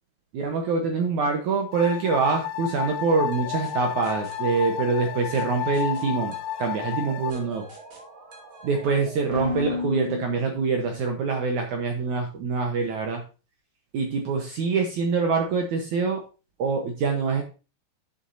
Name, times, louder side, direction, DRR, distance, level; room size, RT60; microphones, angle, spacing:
voice 1, 0.3-7.7 8.6-13.2 13.9-16.2 16.6-17.4, right 4 dB, 70° right, 3 dB, 1.8 m, -25 dB
sound 1, 1.7-7.3, left 12 dB, 85° left, 2.7 m, -32 dB
sound 2, 3.3-11.1, left 3 dB, 40° right, 2.2 m, -37 dB
10.5 x 7.1 x 2.6 m, 0.32 s
omnidirectional pair, 4.7 m